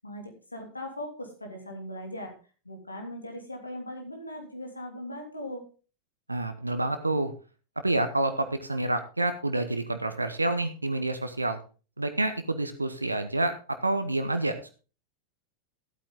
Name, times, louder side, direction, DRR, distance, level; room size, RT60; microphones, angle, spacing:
voice 1, 0.0-2.3 2.6-5.6, left 1 dB, 80° left, 3 dB, 2.8 m, -39 dB
voice 2, 6.3-7.3 7.8-11.6 12.0-14.6, right 2 dB, 80° right, 9 dB, 1.0 m, -28 dB
14.0 x 8.7 x 3.7 m, 0.35 s
figure-of-eight pair, 90°, 0 cm